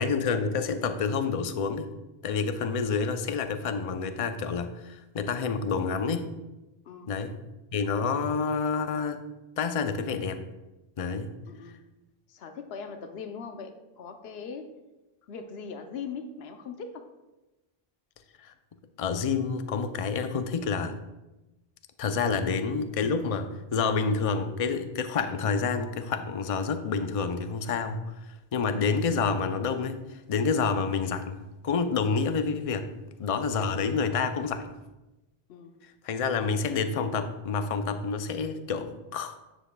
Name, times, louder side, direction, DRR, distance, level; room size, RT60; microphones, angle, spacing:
voice 1, 0.0-1.9 2.2-6.3 7.1-7.4 7.7-9.2 9.6-10.4 11.0-11.3 18.4-18.5 19.0-21.0 22.0-28.0 28.3-32.9 33.2-34.7 36.0-39.4, left 5 dB, 45° left, 8 dB, 0.5 m, -28 dB
voice 2, 12.3-14.7 15.3-17.1 35.5-35.7, left 5 dB, 85° left, 7 dB, 0.9 m, -40 dB
9.9 x 7.2 x 2.2 m, 1.0 s
omnidirectional pair, 1.0 m